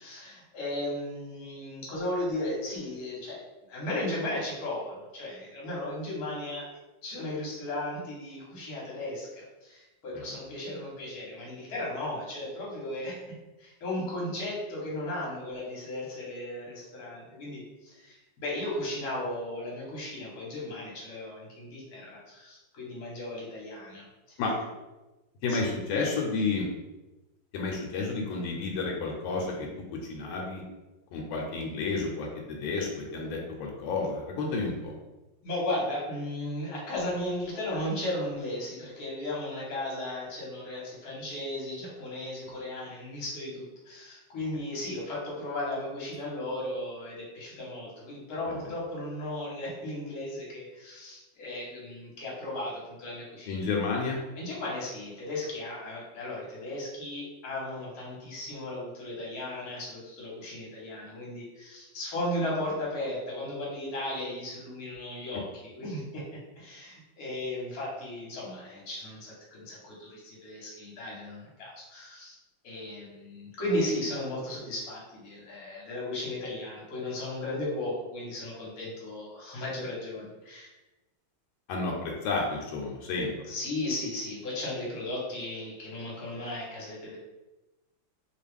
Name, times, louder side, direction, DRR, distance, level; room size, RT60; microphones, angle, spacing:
voice 1, 0.0-3.4 3.7-6.7 7.0-13.2 13.6-24.4 25.5-26.1 35.4-53.7 54.4-66.2 66.6-72.4 72.6-80.7 83.5-87.2, left 1 dB, 55° left, -5 dB, 1.4 m, -35 dB
voice 2, 25.4-26.7 27.5-30.6 31.1-34.9 53.5-54.2 81.7-83.3, left 3 dB, 80° left, -1 dB, 1.3 m, -31 dB
3.2 x 2.3 x 3.3 m, 1.1 s
omnidirectional pair, 2.1 m